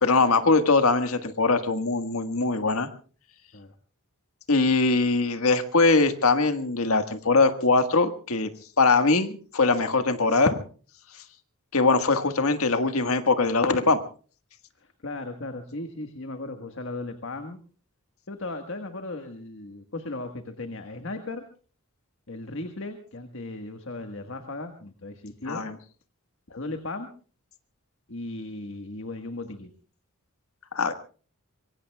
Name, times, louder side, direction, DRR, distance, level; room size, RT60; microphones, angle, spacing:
voice 1, 0.0-2.9 4.5-8.5 8.8-10.6 11.7-14.0 25.5-25.7 30.7-30.9, left 3 dB, 80° left, 8 dB, 1.6 m, -22 dB
voice 2, 14.8-17.6 18.3-21.4 22.3-25.6 26.5-27.1 28.1-29.7, left 2 dB, 60° left, 6 dB, 1.5 m, -36 dB
25.0 x 23.0 x 2.3 m, 0.39 s
head